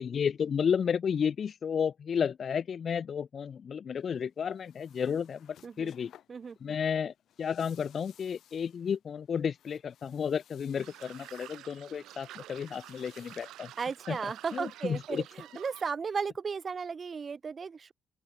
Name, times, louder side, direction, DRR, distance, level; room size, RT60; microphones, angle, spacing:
voice 1, 0.0-6.1 6.6-13.7 14.1-14.2 14.5-15.2, left 7 dB, 50° left, 0.4 m, -32 dB
sound 1, 4.0-14.7, left 11 dB, 70° left, 6.5 m, -62 dB
voice 2, 6.3-6.7 13.8-17.9, right 5 dB, 40° right, 0.6 m, -35 dB
sound 2, 10.8-15.9, right 14 dB, 85° right, 0.7 m, -50 dB
open air
cardioid pair, 90°, 0 cm